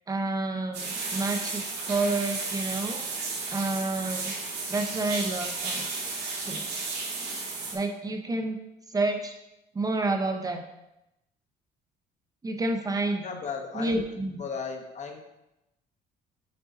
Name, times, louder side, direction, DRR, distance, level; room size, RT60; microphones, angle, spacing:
voice 1, 0.1-3.0 3.5-4.3 4.7-5.8 6.4-6.6 7.7-8.6 8.9-9.4 9.7-10.6 12.4-13.2 13.8-14.4, right 2 dB, 20° right, 4 dB, 0.7 m, -29 dB
sound 1, 0.7-7.7, right 3 dB, 75° right, 2.4 m, -33 dB
voice 2, 13.2-15.2, left 5 dB, 45° left, 4 dB, 1.1 m, -36 dB
6.6 x 5.3 x 3.9 m, 0.89 s
cardioid pair, 110°, 17 cm